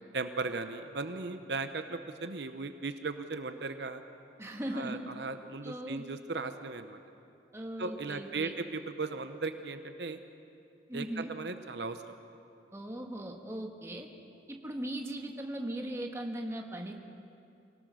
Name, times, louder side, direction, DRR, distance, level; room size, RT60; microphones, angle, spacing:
voice 1, 0.1-4.0 4.7-7.0 7.8-10.2 10.9-12.0, right 3 dB, 70° right, 8 dB, 0.8 m, -37 dB
voice 2, 4.4-5.1 5.6-6.1 7.5-8.5 10.9-11.3 12.7-14.1 14.5-17.0, right 1 dB, 15° right, 2 dB, 1.4 m, -38 dB
25.0 x 18.0 x 6.2 m, 2.6 s
head